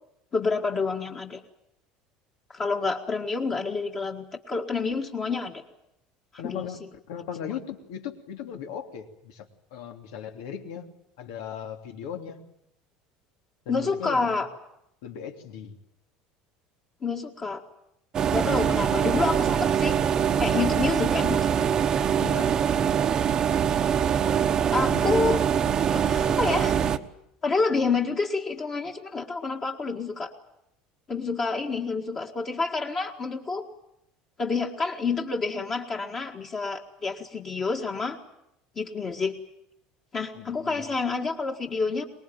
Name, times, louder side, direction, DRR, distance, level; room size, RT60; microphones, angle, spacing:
voice 1, 0.3-1.4 2.5-5.6 6.4-6.7 13.7-14.5 17.0-17.6 18.3-20.0 20.4-21.7 24.7-25.4 25.9-26.8 27.4-30.3 31.1-33.7 34.4-38.2 38.8-39.4 40.1-42.0, left 4 dB, 25° left, 1 dB, 1.8 m, -28 dB
voice 2, 6.4-6.8 7.1-10.9 11.2-12.4 13.6-14.4 15.0-15.8 22.2-22.5 24.8-25.2 40.3-40.8, left 8 dB, 85° left, 5 dB, 3.0 m, -38 dB
sound 1, 18.1-27.0, right 8 dB, 30° right, 1.0 m, -23 dB
24.0 x 20.5 x 9.1 m, 0.80 s
cardioid pair, 155°, 2 cm